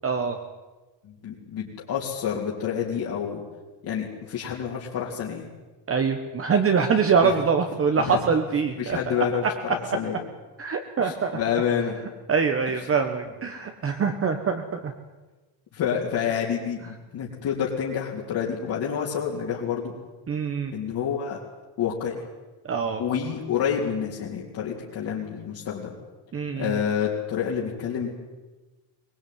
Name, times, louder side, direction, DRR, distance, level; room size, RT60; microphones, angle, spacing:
voice 1, 0.0-0.4 5.9-9.0 10.6-11.4 12.3-14.9 20.3-20.7 22.6-23.0 26.3-26.8, right 5 dB, 25° right, 5 dB, 1.4 m, -24 dB
voice 2, 1.0-3.4 3.8-5.5 7.2-7.3 8.0-8.2 8.8-10.2 11.0-11.9 15.7-19.9 20.7-21.4 21.8-22.2 23.0-26.0 26.6-28.1, left 8 dB, 45° left, -5 dB, 3.7 m, -28 dB
23.0 x 20.5 x 9.6 m, 1.2 s
cardioid pair, 175°, 49 cm